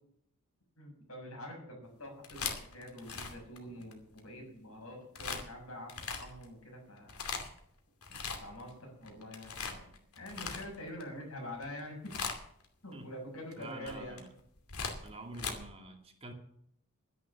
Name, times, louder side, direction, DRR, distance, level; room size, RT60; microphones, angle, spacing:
voice 1, 0.8-5.9 6.2-7.2 8.1-9.9 10.1-12.0 12.8-14.2, left 1 dB, 70° left, 1 dB, 6.9 m, -46 dB
sound 1, 2.0-4.2 5.1-5.4 5.9-6.5 7.0-7.6 8.0-8.7 9.0-11.0 11.5-11.8 12.0-12.6 13.5-15.5, left 5 dB, 85° left, 2.6 m, -39 dB
voice 2, 13.6-14.3 15.0-16.3, right 2 dB, 25° right, 4 dB, 2.2 m, -47 dB
12.0 x 10.5 x 7.1 m, 0.70 s
head